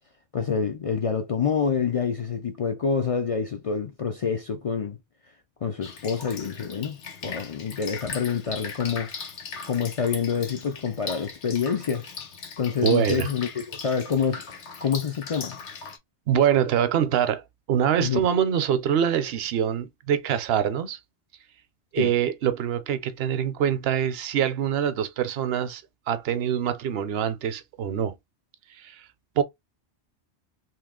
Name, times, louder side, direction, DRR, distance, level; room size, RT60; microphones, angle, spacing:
voice 1, 0.3-5.0 5.6-9.1 9.6-12.1 12.6-15.6 18.0-18.3 22.0-22.1, left 6 dB, 55° left, 0.4 m, -27 dB
Drip, 5.8-16.0, left 5 dB, 85° left, 1.2 m, -39 dB
voice 2, 12.8-13.3 16.3-21.0 21.9-25.8 26.1-28.2 28.8-29.1 29.4-29.5, right 9 dB, 65° right, 0.8 m, -24 dB
3.0 x 2.8 x 3.5 m
omnidirectional pair, 1.1 m